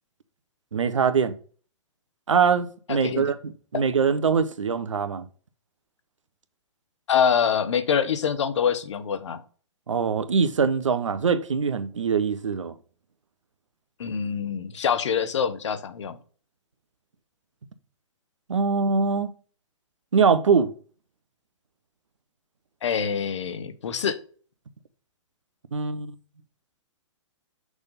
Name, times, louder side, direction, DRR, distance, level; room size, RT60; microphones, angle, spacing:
voice 1, 0.7-1.3 2.3-5.3 9.9-12.7 18.5-19.3 20.1-20.7 25.7-26.1, right 5 dB, 90° right, 0.8 m, -23 dB
voice 2, 2.9-3.3 3.7-3.8 7.1-9.4 14.0-16.2 22.8-24.2, left 7 dB, 75° left, 0.9 m, -25 dB
6.3 x 3.5 x 5.4 m
hypercardioid pair, 130°, 15 cm